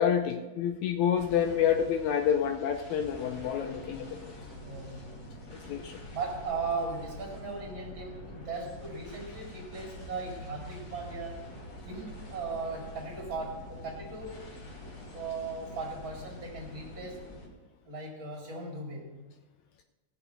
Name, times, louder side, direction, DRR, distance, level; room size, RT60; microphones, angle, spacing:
voice 1, 0.0-4.1 5.7-5.9, left 8 dB, 75° left, 6 dB, 1.9 m, -28 dB
sound 1, 1.2-17.5, equal, 55° left, 3.4 m, -46 dB
voice 2, 4.6-5.1 6.1-11.5 11.8-14.5 15.1-17.2 17.9-19.2, right 3 dB, 40° right, 0 dB, 2.5 m, -38 dB
17.0 x 6.9 x 5.0 m, 1.2 s
omnidirectional pair, 3.6 m